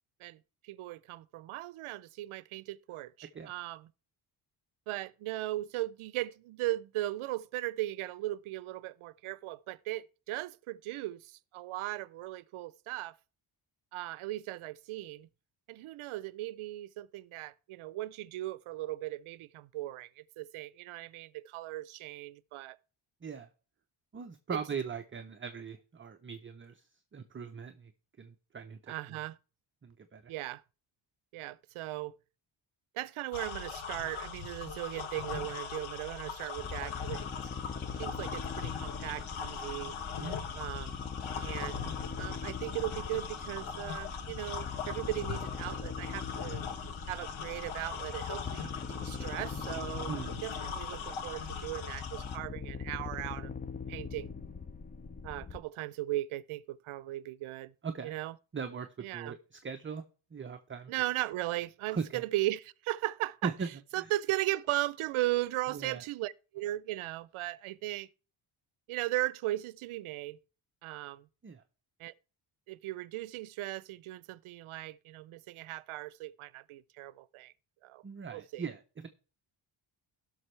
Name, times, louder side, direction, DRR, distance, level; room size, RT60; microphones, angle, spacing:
voice 1, 0.6-3.9 4.9-13.2 13.9-15.3 15.7-22.8 24.5-24.6 28.9-29.3 30.3-30.6 31.3-32.1 32.9-37.2 38.0-40.0 40.5-40.9 41.4-41.8 42.2-46.6 47.1-50.1 50.4-53.5 53.9-54.3 55.2-57.7 58.0-58.3 59.0-59.4 60.9-63.5 63.9-68.1 68.9-70.4 70.8-71.3 72.0-72.1 72.7-77.5 77.8-78.0 78.3-78.7, right 16 dB, 80° right, 0.6 m, -37 dB
voice 2, 24.1-26.9 27.1-27.9 28.2-29.2 29.8-30.3 40.2-40.5 50.1-50.4 57.8-58.1 58.5-60.0 60.3-60.9 61.9-62.2 63.4-63.7 64.0-64.1 65.7-66.0 71.4-71.6 78.0-79.1, right 5 dB, 25° right, 0.6 m, -40 dB
sound 1, 33.3-52.4, left 6 dB, 75° left, 1.1 m, -40 dB
sound 2, 36.6-55.6, left 5 dB, 20° left, 0.5 m, -42 dB
17.0 x 6.2 x 3.2 m
cardioid pair, 110°, 49 cm